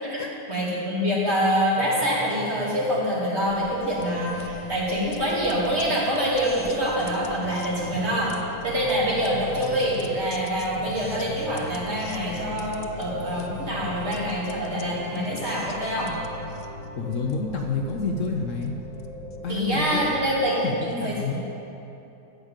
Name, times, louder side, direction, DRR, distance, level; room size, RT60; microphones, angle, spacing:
voice 1, 0.5-8.3 8.6-16.1 19.5-20.6 21.0-21.3, equal, 40° right, -6 dB, 2.9 m, -25 dB
sound 1, 1.7-3.0 3.5-3.8 4.3-5.8 6.3-7.4 7.8-8.2 8.7-10.2 10.7-11.7 12.2-12.5 13.0-14.3 14.8-15.6 16.1-16.4 16.9-18.5 19.0-19.6, right 2 dB, 60° right, 3.6 m, -43 dB
sound 2, 3.9-20.5, left 4 dB, 85° left, 1.3 m, -41 dB
voice 2, 17.0-18.8 19.4-20.1 20.6-21.3, left 4 dB, 60° left, 2 dB, 1.0 m, -28 dB
14.5 x 5.0 x 8.9 m, 2.9 s
omnidirectional pair, 1.7 m